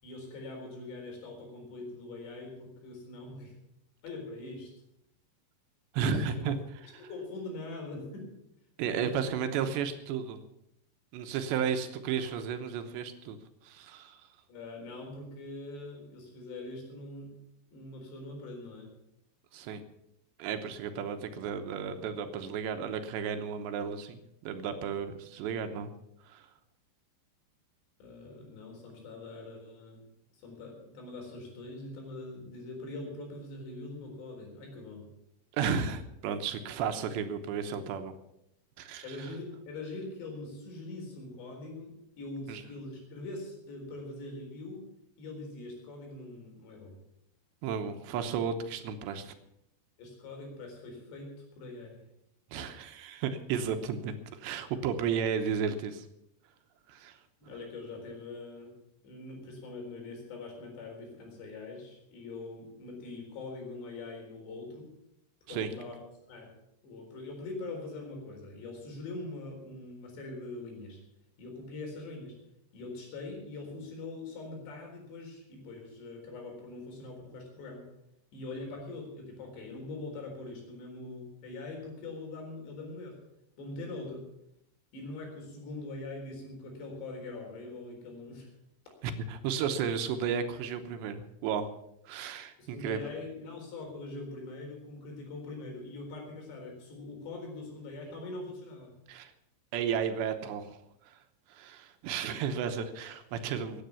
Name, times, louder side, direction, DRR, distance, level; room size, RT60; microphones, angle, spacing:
voice 1, 0.0-3.6 4.0-4.7 6.0-6.5 7.0-8.3 9.0-9.3 14.5-17.3 17.7-18.9 28.0-30.0 30.3-35.1 39.0-44.9 45.2-47.0 50.0-52.0 57.4-58.7 59.0-65.0 65.5-66.5 66.8-71.0 71.4-72.4 72.7-77.9 78.3-83.2 83.6-84.3 84.9-88.5 92.6-99.0, left 2 dB, 75° left, 1 dB, 6.2 m, -43 dB
voice 2, 5.9-6.6 8.8-10.4 11.1-13.4 13.6-14.3 19.5-19.8 20.4-25.9 26.3-26.5 35.5-38.1 38.8-39.3 42.5-42.6 47.6-49.3 52.5-56.0 56.9-57.2 65.5-65.7 89.0-91.7 92.1-93.0 99.1-99.3 99.7-100.8 101.1-101.2 101.5-103.8, right 7 dB, 80° right, 8 dB, 3.2 m, -33 dB
16.0 x 9.8 x 7.0 m, 0.80 s
omnidirectional pair, 5.0 m